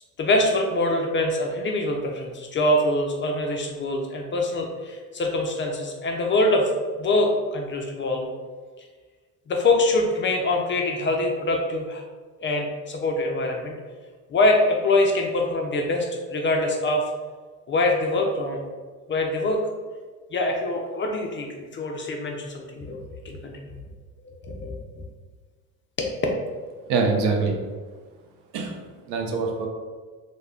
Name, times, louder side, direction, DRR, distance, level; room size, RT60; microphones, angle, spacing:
voice 1, 0.2-8.3 9.5-12.0 12.4-13.7 14.3-17.0 17.7-18.7 19.1-19.6 20.3-23.7 24.2-24.8 26.0-26.1, left 2 dB, 30° left, 2 dB, 0.3 m, -24 dB
voice 2, 26.9-27.6 28.5-28.8 29.1-29.7, right 4 dB, 70° right, 2 dB, 0.6 m, -24 dB
2.1 x 2.1 x 3.5 m, 1.5 s
supercardioid pair, 80°, 41 cm